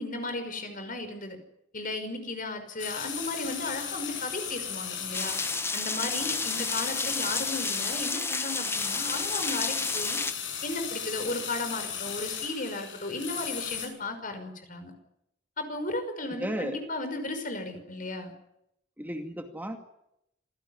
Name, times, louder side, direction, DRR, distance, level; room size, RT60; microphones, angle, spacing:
voice 1, 0.0-1.4 1.7-5.4 5.7-10.2 10.6-14.9 15.6-18.3, left 2 dB, 50° left, 8 dB, 5.6 m, -35 dB
sound 1, 2.8-13.9, left 8 dB, 90° left, 7.5 m, -36 dB
sound 2, 5.1-10.3, left 3 dB, 15° left, 1.2 m, -31 dB
voice 2, 16.4-16.8 19.0-19.8, equal, 10° right, 4 dB, 2.4 m, -34 dB
27.0 x 17.0 x 9.9 m, 0.80 s
head